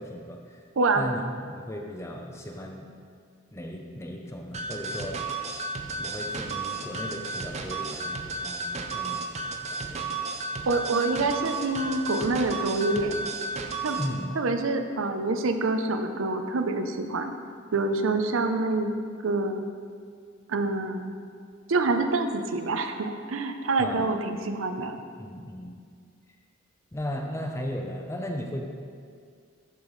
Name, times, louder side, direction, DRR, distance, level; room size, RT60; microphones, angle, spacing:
voice 1, 0.0-0.6 0.9-2.9 3.5-5.2 6.0-9.2 9.7-10.1 14.0-14.3 23.8-24.1 24.8-24.9 25.2-25.8 26.9-28.7, equal, 15° left, 1 dB, 0.5 m, -36 dB
voice 2, 0.8-1.1 10.7-13.2 13.8-14.0 14.3-17.3 17.7-18.9 19.2-19.7 20.5-21.1 21.7-25.0, right 3 dB, 80° right, 7 dB, 0.6 m, -26 dB
sound 1, 4.5-14.1, right 3 dB, 35° right, 0.6 m, -33 dB
11.5 x 5.6 x 3.2 m, 2.1 s
head